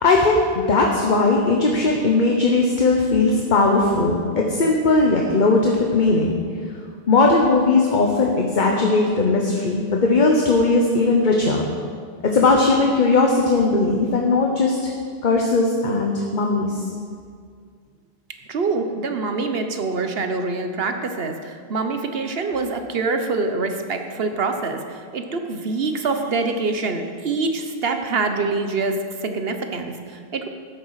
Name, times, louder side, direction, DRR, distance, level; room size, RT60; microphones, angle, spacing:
voice 1, 0.0-6.4 7.1-11.7 12.2-14.9 15.2-16.8, left 3 dB, 50° left, 0 dB, 1.1 m, -18 dB
voice 2, 18.5-30.5, right 3 dB, 70° right, 6 dB, 1.2 m, -25 dB
13.0 x 9.9 x 4.8 m, 2.1 s
omnidirectional pair, 1.0 m